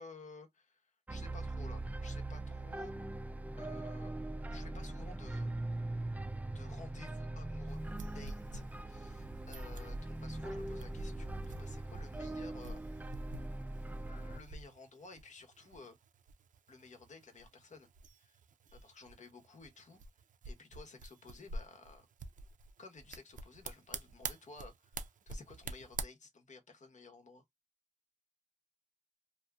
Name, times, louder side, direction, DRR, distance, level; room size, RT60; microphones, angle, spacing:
voice 1, 0.0-2.9 3.6-5.5 6.5-12.8 14.1-16.0 16.7-17.9 18.2-18.4 18.7-20.0 20.5-22.1 22.8-27.4, left 3 dB, 65° left, 1.0 m, -54 dB
sound 1, 1.1-14.4, right 2 dB, 10° right, 0.3 m, -41 dB
sound 2, 7.7-26.0, right 3 dB, 80° right, 0.5 m, -48 dB
2.7 x 2.4 x 2.2 m
cardioid pair, 65°, 13 cm